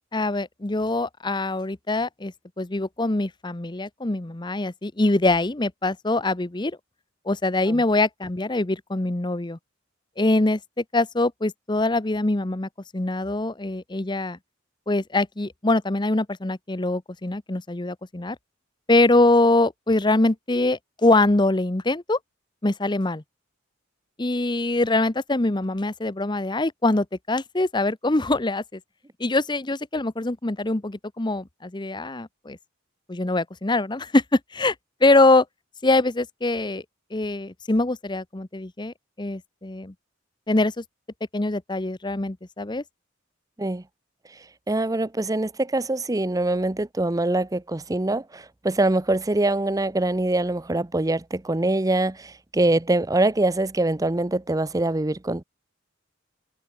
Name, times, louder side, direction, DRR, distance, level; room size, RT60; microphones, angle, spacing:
voice 1, 0.1-6.8 7.3-9.6 10.2-14.4 14.9-18.4 18.9-22.2 22.6-23.2 24.2-28.8 29.2-32.6 33.1-34.7 35.0-35.4 35.8-36.8 37.1-39.9 40.5-40.8 41.3-42.8, left 2 dB, 20° left, 0.8 m, -23 dB
voice 2, 44.7-55.4, right 2 dB, 15° right, 0.6 m, -24 dB
open air
head